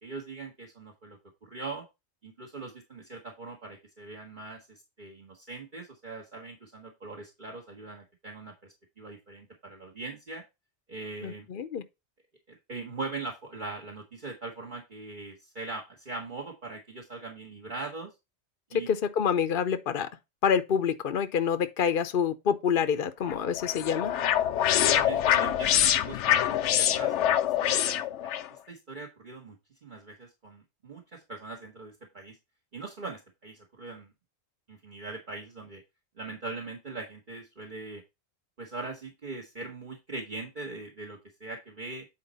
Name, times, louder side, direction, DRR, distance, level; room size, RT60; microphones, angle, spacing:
voice 1, 0.0-1.9 2.2-10.4 10.9-11.5 12.5-18.1 18.7-18.9 24.8-29.6 29.8-32.4 32.7-34.1 34.7-35.8 36.2-38.0 38.6-42.1, right 3 dB, 45° right, 1.7 m, -41 dB
voice 2, 11.2-11.8 18.9-20.1 20.4-24.1, left 7 dB, 55° left, 0.9 m, -27 dB
sound 1, 23.3-28.5, left 11 dB, 85° left, 0.9 m, -25 dB
9.5 x 4.5 x 4.0 m
omnidirectional pair, 1.2 m